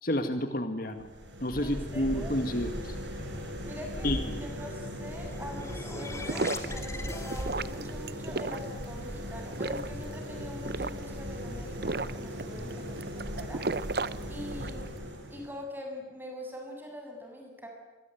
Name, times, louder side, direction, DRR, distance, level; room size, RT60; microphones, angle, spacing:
voice 1, 0.0-1.1 1.4-3.0 4.0-4.4 12.6-12.7, left 1 dB, 50° left, 8 dB, 2.0 m, -30 dB
sound 1, 0.9-15.6, equal, 85° right, 7.2 m, -38 dB
voice 2, 1.6-2.3 3.6-13.7 14.3-14.9 15.3-17.7, left 1 dB, 10° right, 2 dB, 7.4 m, -43 dB
sound 2, 5.1-8.0, left 2 dB, 15° left, 2.5 m, -42 dB
sound 3, 6.0-14.9, right 3 dB, 55° right, 0.8 m, -36 dB
27.0 x 23.0 x 9.3 m, 1.1 s
head